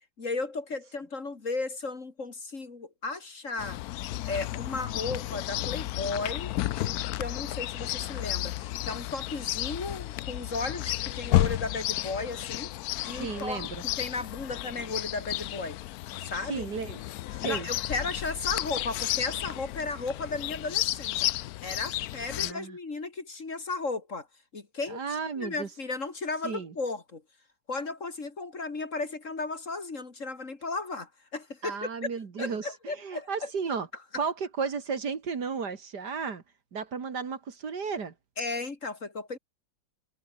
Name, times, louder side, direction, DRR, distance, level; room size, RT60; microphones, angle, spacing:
voice 1, 0.2-3.8 4.3-12.7 13.0-13.7 14.0-15.8 16.2-16.7 17.4-21.3 21.6-24.3 24.5-25.0 25.4-27.2 27.7-32.1 32.4-33.5 38.4-39.4, left 3 dB, 40° left, 2.6 m, -35 dB
Chirp tweet, 3.6-22.5, left 15 dB, 75° left, 0.9 m, -32 dB
voice 2, 13.1-13.8 16.5-17.0 17.4-17.7 22.4-22.8 24.9-25.7 26.4-26.7 31.6-33.9 34.2-36.4 36.7-38.1, right 5 dB, 60° right, 2.6 m, -33 dB
omnidirectional pair, 2.1 m